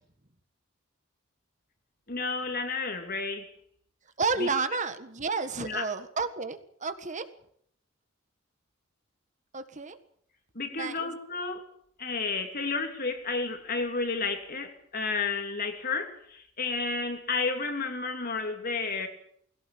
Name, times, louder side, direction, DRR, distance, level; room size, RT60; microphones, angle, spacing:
voice 1, 2.1-3.5 4.4-4.5 5.6-5.9 10.5-11.7 12.0-19.1, left 4 dB, 45° left, 3.1 m, -31 dB
voice 2, 4.2-7.2 9.5-10.0 10.7-11.1, right 4 dB, 35° right, 1.6 m, -31 dB
21.5 x 17.0 x 8.7 m
head